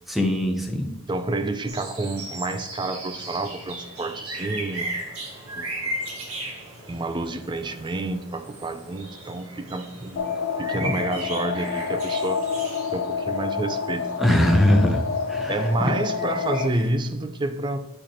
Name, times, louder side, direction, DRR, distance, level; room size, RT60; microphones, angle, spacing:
voice 1, 0.1-0.9 10.8-10.9 14.2-15.0 15.3-15.9, left 1 dB, ahead, 2 dB, 0.8 m, -21 dB
voice 2, 1.1-4.9 5.5-5.9 6.9-12.4 12.9-14.4 15.5-17.8, right 2 dB, 20° right, 9 dB, 0.4 m, -29 dB
sound 1, 1.7-16.9, right 1 dB, 80° right, 1.8 m, -37 dB
sound 2, 10.2-16.7, left 6 dB, 55° left, 0.3 m, -28 dB
8.5 x 4.8 x 3.0 m, 1.0 s
head